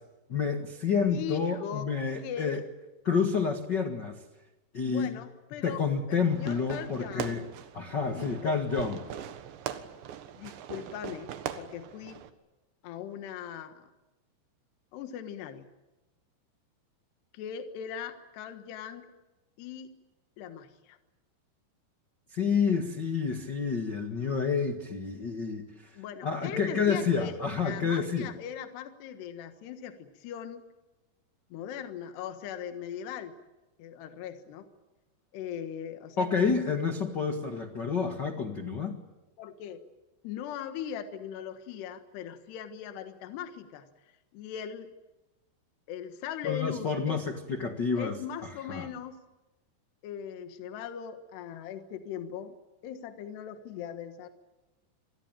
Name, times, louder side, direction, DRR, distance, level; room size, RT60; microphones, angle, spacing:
voice 1, 0.3-2.6 3.0-4.2 4.7-5.1 5.6-7.4 7.7-9.0 22.3-25.9 26.2-28.3 36.2-39.0 46.4-48.2 48.7-48.9, left 5 dB, 90° left, 5 dB, 0.9 m, -29 dB
voice 2, 1.1-1.9 2.2-2.6 4.8-5.8 6.1-7.4 8.1-8.6 10.4-12.2 12.8-13.9 14.9-15.7 17.3-19.1 19.6-19.9 20.4-21.0 25.9-30.6 31.5-33.3 33.8-34.7 35.3-36.5 39.4-39.8 40.2-43.9 44.3-44.9 45.9-47.2 48.0-49.2 50.0-52.6 52.8-54.3, left 8 dB, 70° left, 8 dB, 3.5 m, -39 dB
Fireworks, 6.3-12.3, right 10 dB, 80° right, 3.7 m, -41 dB
27.5 x 21.5 x 9.1 m, 1.1 s
omnidirectional pair, 5.1 m